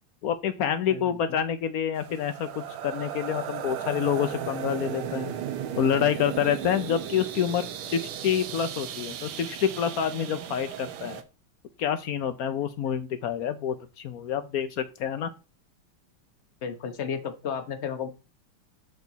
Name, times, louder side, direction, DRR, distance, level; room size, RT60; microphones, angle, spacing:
voice 1, 0.2-5.3 5.8-11.2 11.8-15.3, left 9 dB, 80° left, 10 dB, 0.8 m, -27 dB
voice 2, 0.9-1.4 16.6-18.1, left 7 dB, 45° left, 8 dB, 1.0 m, -33 dB
sound 1, 2.0-11.2, right 9 dB, 75° right, 1.8 m, -36 dB
13.0 x 4.4 x 4.0 m, 0.31 s
omnidirectional pair, 2.4 m